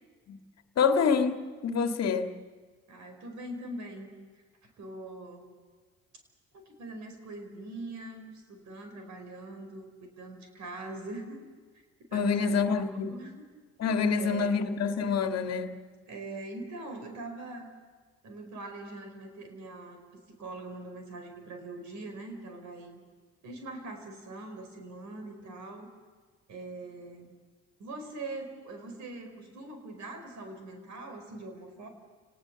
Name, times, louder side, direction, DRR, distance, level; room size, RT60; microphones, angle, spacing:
voice 1, 0.8-2.3 12.1-13.2 13.8-15.8, left 5 dB, 50° left, 7 dB, 1.8 m, -27 dB
voice 2, 2.9-4.1 4.8-5.5 6.5-11.5 12.1-13.3 14.1-14.6 16.1-17.7 18.2-20.0 20.4-23.0 23.4-25.9 26.5-27.3 27.8-31.9, right 2 dB, 60° right, 5 dB, 5.1 m, -42 dB
29.5 x 19.0 x 7.0 m, 1.4 s
hypercardioid pair, 55°, 32 cm